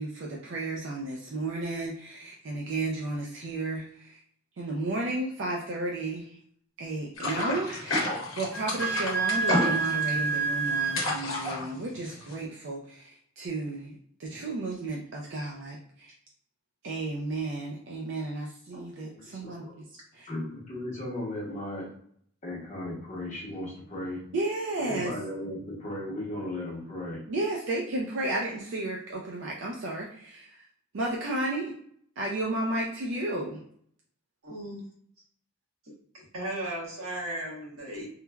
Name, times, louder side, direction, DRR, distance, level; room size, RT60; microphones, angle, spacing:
voice 1, 0.0-4.2 4.6-6.4 6.8-16.1 16.8-19.7 19.9-20.3 24.3-25.1 27.3-30.7 30.9-31.8 32.2-33.6, right 2 dB, 55° right, -2 dB, 0.4 m, -33 dB
sound 1, 7.2-12.4, left 1 dB, 65° left, 0.8 m, -30 dB
Wind instrument woodwind instrument, 8.5-11.1, right 5 dB, 10° left, 0.4 m, -28 dB
voice 2, 19.1-19.8 20.3-21.9 22.4-24.2 24.8-27.2, left 1 dB, 35° left, -3 dB, 0.8 m, -36 dB
voice 3, 34.4-34.8 36.3-38.1, right 1 dB, 80° right, -5 dB, 1.1 m, -36 dB
3.1 x 2.1 x 2.3 m, 0.64 s
head